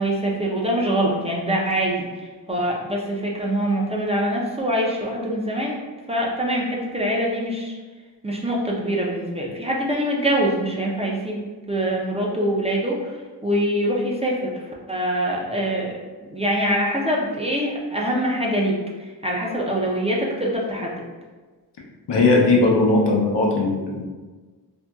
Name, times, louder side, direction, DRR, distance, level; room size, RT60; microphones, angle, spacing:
voice 1, 0.0-2.1 2.5-5.8 6.1-7.7 8.2-14.5 14.9-21.1, right 1 dB, 15° right, -3 dB, 0.5 m, -24 dB
voice 2, 22.1-24.1, left 3 dB, 85° left, -3 dB, 0.7 m, -18 dB
2.7 x 2.7 x 2.3 m, 1.3 s
cardioid pair, 65°, 41 cm